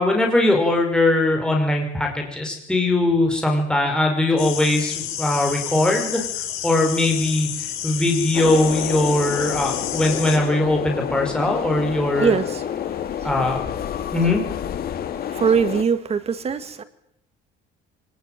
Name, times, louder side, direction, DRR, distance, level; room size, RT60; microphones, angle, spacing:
voice 1, 0.0-6.2 6.6-12.3 13.2-13.6 14.1-14.4, left 2 dB, 5° left, 1 dB, 5.3 m, -20 dB
sound 1, 4.4-10.4, left 11 dB, 75° left, 5.6 m, -30 dB
sound 2, 8.3-15.8, left 9 dB, 45° left, 2.1 m, -29 dB
voice 2, 12.2-13.3 13.9-14.1 15.1-16.8, right 6 dB, 30° right, 10 dB, 2.0 m, -23 dB
24.0 x 19.5 x 9.2 m, 0.73 s
cardioid pair, 160°, 21 cm